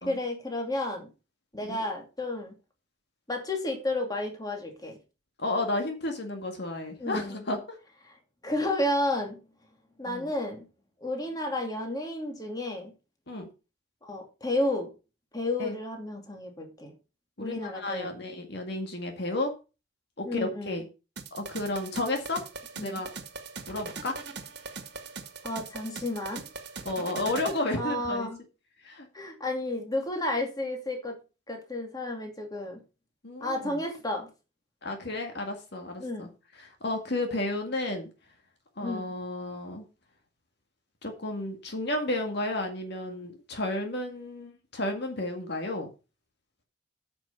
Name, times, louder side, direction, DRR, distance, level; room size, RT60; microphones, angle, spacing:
voice 1, 0.1-1.1 1.5-2.5 3.3-5.0 7.0-7.4 8.4-9.4 10.0-10.6 11.0-12.9 14.0-14.9 15.3-16.9 17.4-18.1 20.2-20.8 22.8-23.0 25.4-26.4 27.8-28.4 29.1-31.2 31.5-32.8 33.4-34.3 36.0-36.3 38.8-39.1, left 1 dB, 20° left, 2.5 m, -32 dB
voice 2, 5.4-7.6 10.1-10.3 13.3-13.5 15.6-15.8 17.4-19.5 20.2-20.9 21.3-22.4 22.8-23.1 23.7-24.2 26.9-28.3 28.8-29.1 33.2-33.8 34.8-36.3 36.6-38.1 38.8-39.9 41.0-45.9, left 2 dB, 60° left, 1.9 m, -32 dB
sound 1, 21.2-27.6, right 4 dB, 60° right, 1.7 m, -40 dB
9.1 x 6.2 x 5.6 m
head